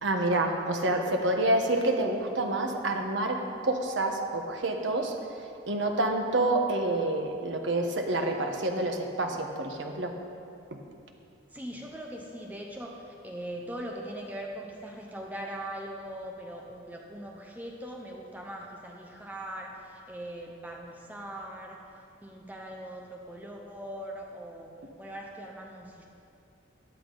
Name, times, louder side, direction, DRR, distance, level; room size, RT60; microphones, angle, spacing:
voice 1, 0.0-5.2 5.7-10.1 10.7-10.8, right 2 dB, 75° right, 3 dB, 1.2 m, -28 dB
voice 2, 11.5-21.8 22.2-24.7 25.0-26.0, right 1 dB, 10° right, 0 dB, 0.8 m, -41 dB
14.0 x 10.0 x 4.0 m, 2.5 s
head